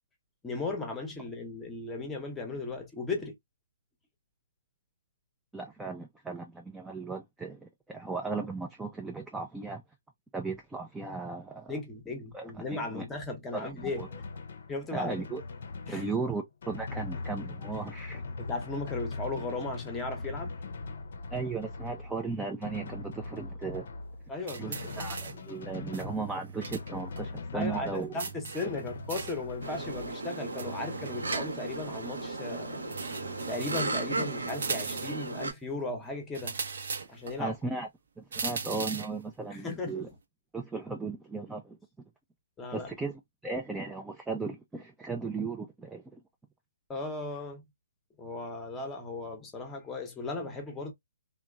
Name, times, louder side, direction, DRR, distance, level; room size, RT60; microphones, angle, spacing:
voice 1, 0.4-3.4 11.7-14.0 14.7-15.2 15.9-16.1 18.4-20.5 24.3-24.9 27.5-32.9 33.5-36.6 37.1-37.5 39.5-40.2 42.6-42.9 46.9-47.6 48.2-50.9, left 3 dB, 10° left, 0.7 m, -36 dB
voice 2, 5.5-9.8 10.3-11.7 12.3-13.1 13.5-14.1 14.9-15.4 15.9-18.2 21.3-23.9 24.6-28.1 37.4-37.9 38.2-40.1 40.5-41.8 42.7-46.2, right 4 dB, 5° right, 0.3 m, -36 dB
Drum, 13.8-30.1, left 3 dB, 60° left, 0.5 m, -41 dB
sound 1, 24.5-25.5 25.9-26.9 27.2-27.3 28.2-29.5 30.6-31.8 32.9-34.0 34.5-35.3 36.3-37.4 38.3-39.2, right 5 dB, 65° right, 0.6 m, -38 dB
sound 2, 29.6-35.5, right 2 dB, 90° right, 0.9 m, -35 dB
2.9 x 2.1 x 2.3 m
hypercardioid pair, 145°, 0 cm